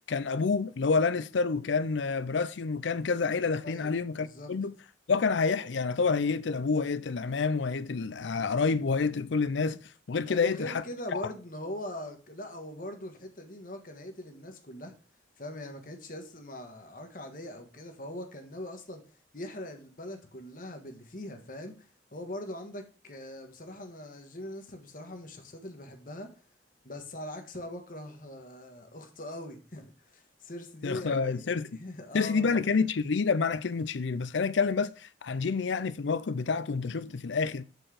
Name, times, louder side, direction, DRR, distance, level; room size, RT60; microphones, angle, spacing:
voice 1, 0.1-4.7 5.1-9.8 10.1-10.8 11.1-11.2 30.8-31.8 32.1-37.6, left 4 dB, 75° left, 0.5 m, -28 dB
voice 2, 4.2-4.5 10.3-14.9 15.4-19.0 19.3-26.3 26.8-32.6, left 1 dB, 45° left, 1.3 m, -41 dB
7.9 x 4.5 x 4.9 m
head